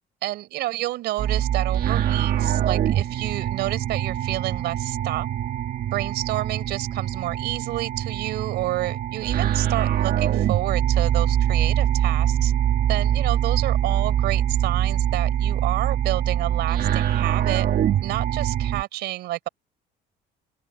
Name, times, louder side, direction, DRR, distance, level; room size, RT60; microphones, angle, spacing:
voice 1, 0.2-5.3 5.9-12.5 12.9-17.7 18.0-19.5, right 16 dB, 80° right, 4.5 m, -29 dB
sound 1, 1.2-18.8, right 10 dB, 60° right, 1.7 m, -23 dB
open air
cardioid pair, 110°, 17 cm